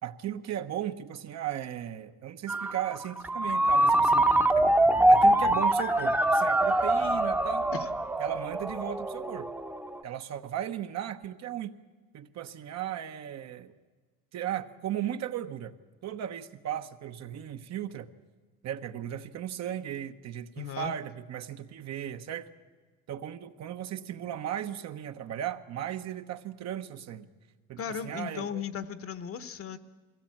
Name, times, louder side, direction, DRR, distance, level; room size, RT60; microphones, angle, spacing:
voice 1, 0.0-4.7 5.1-7.7 8.2-9.5 10.0-11.7 12.1-13.7 14.3-15.7 16.0-18.1 18.6-22.5 23.1-27.3 27.7-28.6, right 11 dB, 60° right, 8 dB, 1.1 m, -36 dB
Ringtone, 2.5-10.0, right 1 dB, 5° right, 0.8 m, -24 dB
voice 2, 20.6-20.9 27.8-29.8, left 7 dB, 50° left, 13 dB, 1.1 m, -36 dB
22.0 x 16.5 x 8.6 m, 1.4 s
cardioid pair, 115°, 30 cm